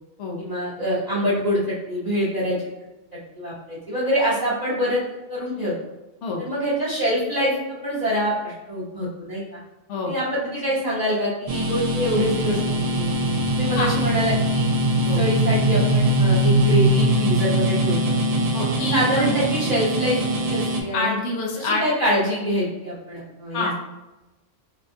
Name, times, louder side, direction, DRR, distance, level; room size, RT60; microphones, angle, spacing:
voice 1, 0.4-2.6 3.3-5.0 5.3-5.7 6.4-9.6 10.0-12.6 13.0-13.1 13.5-14.7 15.0-18.0 18.8-20.2 20.5-21.1 21.5-23.7, equal, 35° right, -9 dB, 1.1 m, -25 dB
sound 1, 11.5-20.8, right 1 dB, 65° right, 0.3 m, -21 dB
voice 2, 18.5-19.4 20.9-21.8 23.5-23.7, left 3 dB, 80° left, 0 dB, 1.0 m, -26 dB
4.3 x 2.3 x 2.6 m, 1.1 s
omnidirectional pair, 1.2 m